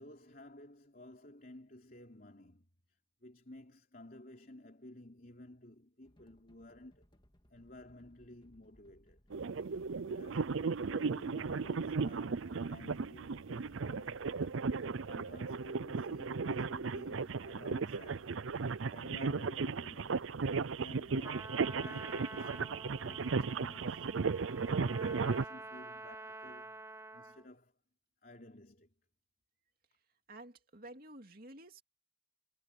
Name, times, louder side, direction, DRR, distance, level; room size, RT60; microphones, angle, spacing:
voice 1, 0.0-7.1 7.5-9.2 9.6-14.5 15.0-18.4 18.9-27.8 28.2-28.9, left 1 dB, 45° left, 3.4 m, -55 dB
sound 1, 6.0-21.7, equal, 25° left, 2.4 m, -66 dB
sound 2, 9.3-25.4, right 4 dB, 75° right, 0.6 m, -36 dB
Trumpet, 21.2-27.5, right 2 dB, 15° right, 1.8 m, -48 dB
voice 2, 30.3-31.8, right 1 dB, 45° right, 2.8 m, -52 dB
head